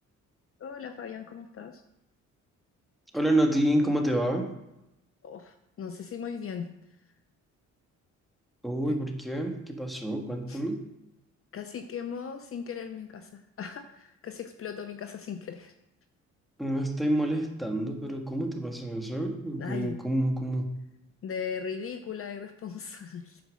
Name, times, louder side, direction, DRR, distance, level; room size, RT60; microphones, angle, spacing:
voice 1, 0.6-1.8 5.2-6.7 8.9-9.0 10.5-10.6 11.5-15.7 19.6-20.0 21.2-23.4, left 7 dB, 45° left, 8 dB, 0.7 m, -38 dB
voice 2, 3.1-4.5 8.6-10.8 16.6-20.7, right 1 dB, ahead, 2 dB, 1.6 m, -28 dB
9.4 x 4.6 x 6.4 m, 0.89 s
cardioid pair, 90°, 30 cm